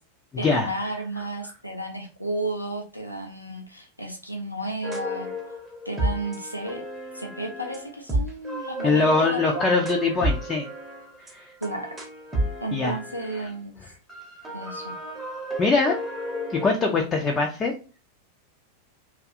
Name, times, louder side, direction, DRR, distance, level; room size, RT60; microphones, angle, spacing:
voice 1, 0.4-5.3 5.8-6.8 7.1-9.6 11.6-12.0 12.6-13.8 14.5-15.0, right 1 dB, 90° left, 1 dB, 0.5 m, -32 dB
sound 1, 4.8-13.6 14.1-17.3, right 1 dB, 10° right, 0.8 m, -32 dB
voice 2, 8.8-10.6 11.3-11.5 12.7-13.0 15.6-16.0 16.5-17.7, left 4 dB, 20° left, 0 dB, 0.4 m, -22 dB
2.6 x 2.4 x 2.4 m, 0.34 s
figure-of-eight pair, 90°, 0 cm